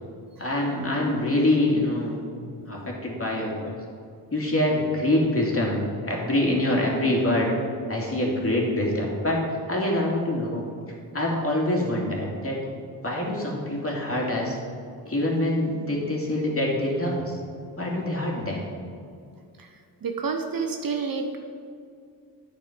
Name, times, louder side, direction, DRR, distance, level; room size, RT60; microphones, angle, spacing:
voice 1, 0.4-2.2 2.6-3.7 4.3-7.5 7.9-10.6 11.1-12.6 13.0-14.6 15.0-17.3 17.8-18.6, left 1 dB, 30° left, -2 dB, 2.6 m, -25 dB
voice 2, 20.0-21.4, right 5 dB, 50° right, 4 dB, 1.0 m, -29 dB
9.4 x 6.7 x 5.2 m, 2.3 s
cardioid pair, 60°, 44 cm